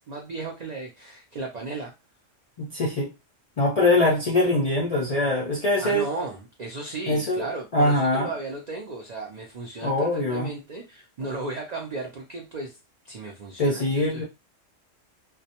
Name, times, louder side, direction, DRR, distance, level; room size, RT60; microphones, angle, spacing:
voice 1, 0.0-1.9 5.8-12.8 13.0-14.2, right 3 dB, 80° right, 0.3 m, -35 dB
voice 2, 2.6-3.1 3.6-6.1 7.1-7.5 7.7-8.3 9.8-10.5 11.2-11.3 13.6-14.2, left 2 dB, 65° left, 0.3 m, -23 dB
2.2 x 2.1 x 2.7 m
omnidirectional pair, 1.3 m